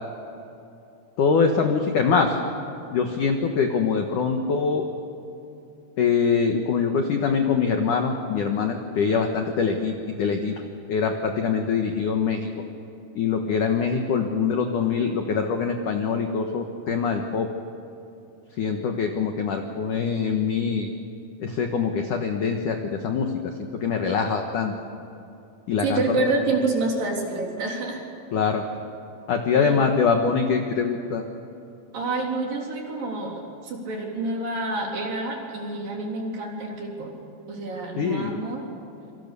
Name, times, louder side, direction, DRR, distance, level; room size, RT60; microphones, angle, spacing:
voice 1, 1.2-2.3 2.9-4.9 6.0-10.5 10.9-12.5 13.2-17.5 18.6-20.9 21.4-24.7 25.7-26.3 28.3-28.6 29.3-31.2 38.0-38.3, left 5 dB, 80° left, 4 dB, 1.8 m, -24 dB
voice 2, 25.8-28.0 29.5-29.9 31.9-37.1 37.5-38.6, right 2 dB, 45° right, 0 dB, 4.8 m, -28 dB
28.0 x 25.5 x 6.9 m, 2.8 s
omnidirectional pair, 5.9 m